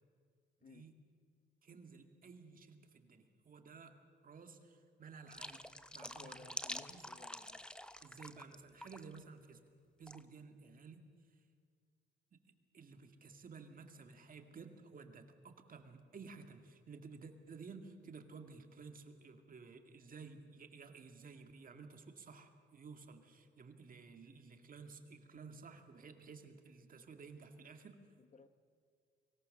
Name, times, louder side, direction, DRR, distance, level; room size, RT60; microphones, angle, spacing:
voice 1, 1.6-4.0 4.2-5.6 5.9-6.6 6.9-7.0 8.0-9.6 10.0-11.0 12.3-12.4 12.7-28.0, right 4 dB, 45° right, 6 dB, 2.1 m, -54 dB
sound 1, 5.3-8.6 8.8-9.2 10.1-10.2, left 1 dB, 5° left, 0.8 m, -47 dB
voice 2, 6.0-7.7 28.2-28.5, left 4 dB, 40° left, 11 dB, 1.2 m, -59 dB
23.5 x 18.0 x 6.6 m, 2.2 s
cardioid pair, 90°, 20 cm